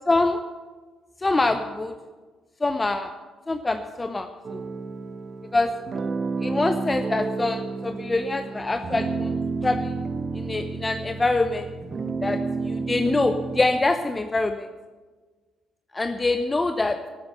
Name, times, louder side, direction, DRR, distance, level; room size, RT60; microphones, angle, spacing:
voice 1, 0.1-0.4 1.2-1.9 2.6-3.1 3.5-4.6 5.5-5.7 6.4-9.3 9.6-9.9 10.3-11.7 12.2-14.7 15.9-17.0, left 2 dB, 25° left, 8 dB, 0.8 m, -24 dB
sound 1, 4.4-13.7, right 4 dB, 45° right, 1.2 m, -31 dB
12.0 x 8.9 x 7.8 m, 1.4 s
hypercardioid pair, 50°, 0 cm